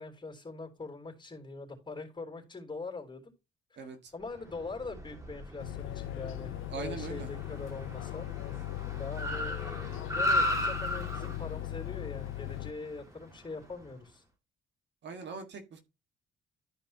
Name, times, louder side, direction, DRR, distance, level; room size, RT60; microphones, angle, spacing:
voice 1, 0.0-3.3 3.8-8.3 9.0-14.2, left 3 dB, 20° left, 3 dB, 3.6 m, -42 dB
voice 2, 3.8-4.1 6.7-7.3 15.0-15.8, right 5 dB, 60° right, 6 dB, 1.8 m, -41 dB
Car, 4.3-13.9, left 1 dB, 15° right, 2.4 m, -36 dB
sound 1, 5.6-12.7, left 18 dB, 90° left, 0.5 m, -39 dB
13.0 x 5.1 x 3.0 m, 0.28 s
cardioid pair, 90°, 20 cm